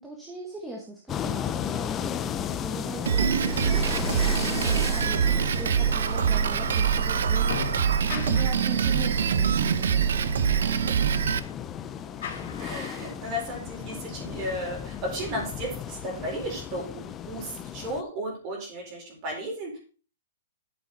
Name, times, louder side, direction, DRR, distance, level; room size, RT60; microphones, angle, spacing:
voice 1, 0.0-10.2 10.5-11.2, right 1 dB, 5° right, -1 dB, 1.4 m, -40 dB
sound 1, 1.1-18.0, left 9 dB, 15° left, 0.5 m, -35 dB
Drum kit, 3.1-11.4, right 8 dB, 75° right, 0.9 m, -24 dB
sound 2, 6.2-14.4, left 6 dB, 55° left, 3.3 m, -43 dB
voice 2, 12.2-19.8, equal, 25° right, 0 dB, 4.6 m, -34 dB
12.0 x 7.4 x 4.2 m, 0.38 s
hypercardioid pair, 175°, 0 cm